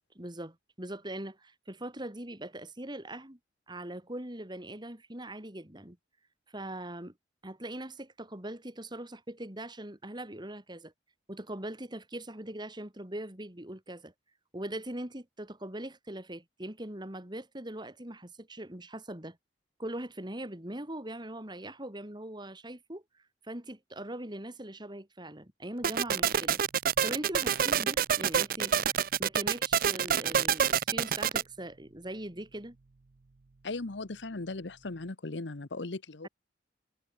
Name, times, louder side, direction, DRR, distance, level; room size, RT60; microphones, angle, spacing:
voice 1, 0.0-3.4 3.7-6.0 6.5-7.1 7.4-10.9 11.3-14.1 14.5-19.4 19.8-23.0 23.4-26.6 27.0-28.8 29.2-32.8, right 1 dB, 25° right, 3.3 m, -41 dB
sound 1, 25.8-31.4, right 8 dB, 50° right, 0.5 m, -27 dB
voice 2, 33.6-36.3, left 3 dB, 80° left, 1.1 m, -38 dB
head